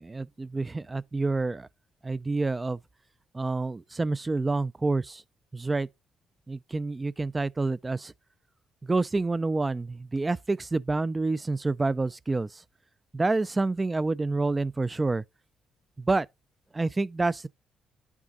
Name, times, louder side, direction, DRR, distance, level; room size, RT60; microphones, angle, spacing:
voice 1, 0.0-1.7 2.0-2.8 3.3-5.2 5.5-5.9 6.5-8.1 8.8-12.5 13.1-15.2 16.0-16.3 16.7-17.5, right 3 dB, 20° right, 0.4 m, -28 dB
11.0 x 6.1 x 3.9 m
cardioid pair, 115°, 0 cm